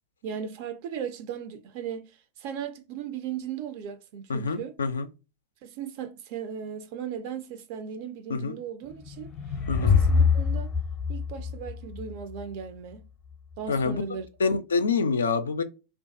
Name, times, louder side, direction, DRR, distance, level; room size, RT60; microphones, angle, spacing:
voice 1, 0.2-2.1 2.4-4.7 5.6-9.3 9.8-10.7 11.1-13.1 13.6-14.3, right 8 dB, 45° right, 0.4 m, -37 dB
voice 2, 4.3-5.1 8.3-8.6 9.7-10.0 13.7-14.0 14.4-15.6, left 4 dB, 70° left, 0.3 m, -26 dB
sound 1, 8.9-12.4, left 5 dB, 30° left, 0.6 m, -24 dB
2.4 x 2.2 x 2.4 m
figure-of-eight pair, 90°, 0 cm